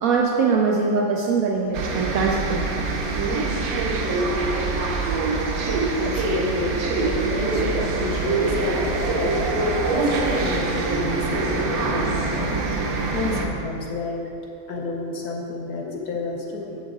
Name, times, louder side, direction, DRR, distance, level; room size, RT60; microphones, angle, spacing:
voice 1, 0.0-3.1, right 4 dB, 85° right, 0 dB, 0.7 m, -22 dB
sound 1, 1.7-13.5, right 3 dB, 60° right, 1.0 m, -24 dB
voice 2, 6.0-12.6 13.1-14.3 14.7-16.8, left 3 dB, 65° left, -1 dB, 1.1 m, -30 dB
7.9 x 7.3 x 3.6 m, 2.8 s
omnidirectional pair, 2.1 m